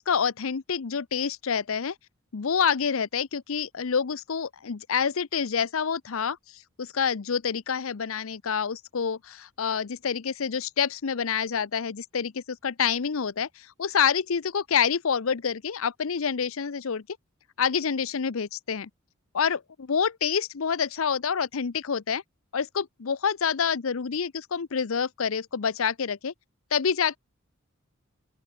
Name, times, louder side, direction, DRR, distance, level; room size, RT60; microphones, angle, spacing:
voice 1, 0.0-1.9 2.3-6.4 6.8-17.0 17.6-18.9 19.3-22.2 22.5-26.3 26.7-27.2, left 6 dB, 70° left, 0.6 m, -27 dB
open air
head